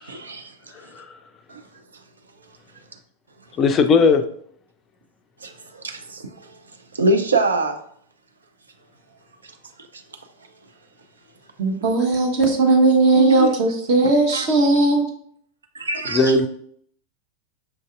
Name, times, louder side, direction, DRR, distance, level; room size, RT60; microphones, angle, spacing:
voice 1, 0.0-0.9 1.5-1.6 5.4-6.6 6.9-7.8 9.4-9.6 9.9-10.0 13.1-13.5 14.3-14.5 15.7-16.4, right 2 dB, 75° right, 0.4 m, -25 dB
voice 2, 3.6-4.2 16.1-16.5, left 4 dB, 25° left, 0.4 m, -16 dB
voice 3, 11.6-15.0, right 2 dB, 45° right, 0.9 m, -17 dB
5.7 x 2.6 x 2.4 m
figure-of-eight pair, 90°, 0 cm